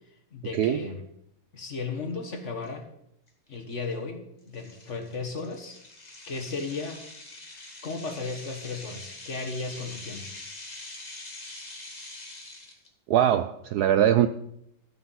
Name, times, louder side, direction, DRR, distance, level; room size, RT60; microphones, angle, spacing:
voice 1, 0.3-1.0 1.5-2.8 3.5-5.8 6.3-7.0 7.8-10.3, left 4 dB, 40° left, 4 dB, 1.5 m, -35 dB
sound 1, 2.6-2.7 3.3-3.5 3.9-4.0 4.5-12.9, left 2 dB, 20° left, 1.8 m, -44 dB
voice 2, 13.1-14.3, right 10 dB, 90° right, 11 dB, 0.8 m, -22 dB
13.0 x 7.9 x 5.6 m, 0.75 s
omnidirectional pair, 2.3 m